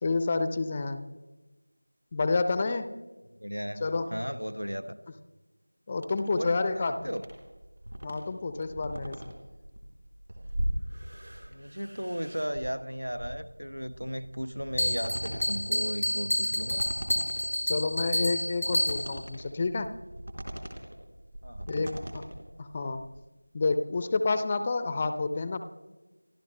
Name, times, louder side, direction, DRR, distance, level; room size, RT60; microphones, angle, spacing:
voice 1, 0.0-1.1 2.1-3.0 3.8-4.1 5.9-7.1 8.0-9.3 17.7-19.9 21.7-22.2 22.6-23.1 23.5-25.6, left 3 dB, 15° left, 10 dB, 0.5 m, -29 dB
voice 2, 3.4-5.0 6.3-7.2 11.5-16.8 21.4-21.8, equal, 85° right, 13 dB, 1.1 m, -35 dB
sound 1, 6.0-23.2, equal, 55° right, 3.5 m, -40 dB
Bell, 14.8-19.3, equal, 85° left, 0.5 m, -29 dB
29.5 x 12.5 x 3.2 m, 1.2 s
figure-of-eight pair, 175°, 0 cm